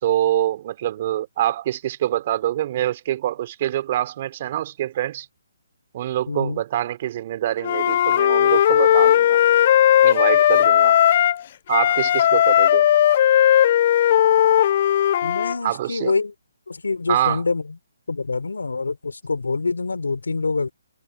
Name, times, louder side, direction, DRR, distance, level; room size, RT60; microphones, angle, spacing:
voice 1, 0.0-5.3 5.9-9.4 10.0-11.0 11.7-12.9 15.6-16.1 17.1-17.4, right 13 dB, 40° right, 4.3 m, -25 dB
voice 2, 6.3-6.6 15.2-16.3 16.7-17.8 18.1-20.7, left 4 dB, 85° left, 3.2 m, -25 dB
Wind instrument woodwind instrument, 7.6-11.4 11.7-15.6, left 11 dB, 40° left, 0.3 m, -17 dB
hypercardioid pair, 150°, 0 cm